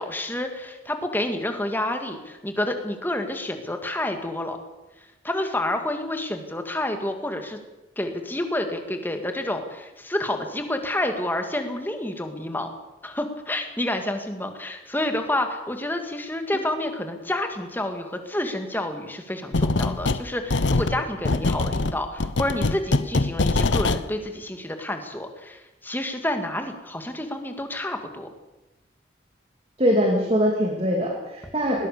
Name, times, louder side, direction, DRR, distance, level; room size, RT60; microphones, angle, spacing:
voice 1, 0.0-4.6 5.0-7.6 8.0-12.7 13.0-28.3, left 1 dB, 10° left, 6 dB, 2.3 m, -29 dB
sound 1, 19.5-20.2 20.5-24.0, left 3 dB, 80° left, 0.9 m, -23 dB
voice 2, 29.8-31.9, equal, 30° right, 0 dB, 3.0 m, -22 dB
20.5 x 19.5 x 7.0 m, 1.0 s
head